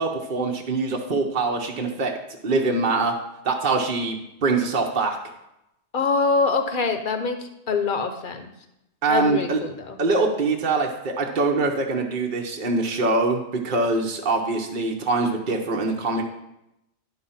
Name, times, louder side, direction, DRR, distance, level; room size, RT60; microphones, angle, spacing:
voice 1, 0.0-2.1 2.4-3.1 3.4-5.2 9.0-9.6 10.0-16.2, right 3 dB, 50° right, 1 dB, 0.9 m, -23 dB
voice 2, 5.9-8.5 9.1-10.0, left 4 dB, 50° left, 7 dB, 0.9 m, -24 dB
11.0 x 4.0 x 5.6 m, 0.87 s
omnidirectional pair, 1.2 m